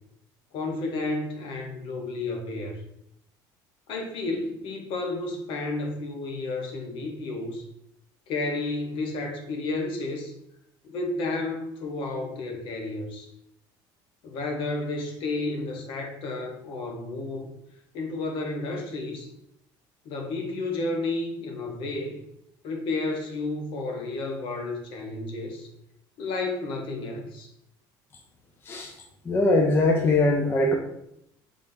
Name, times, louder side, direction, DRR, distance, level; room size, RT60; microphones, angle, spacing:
voice 1, 0.5-2.8 3.9-7.6 8.3-10.3 10.8-13.3 14.2-17.5 17.9-19.3 20.0-22.2 22.6-25.7 26.2-27.5, left 2 dB, 60° left, 2 dB, 0.9 m, -31 dB
voice 2, 29.3-30.7, left 2 dB, 25° left, 2 dB, 0.4 m, -21 dB
3.6 x 2.6 x 3.5 m, 0.78 s
cardioid pair, 125°, 10 cm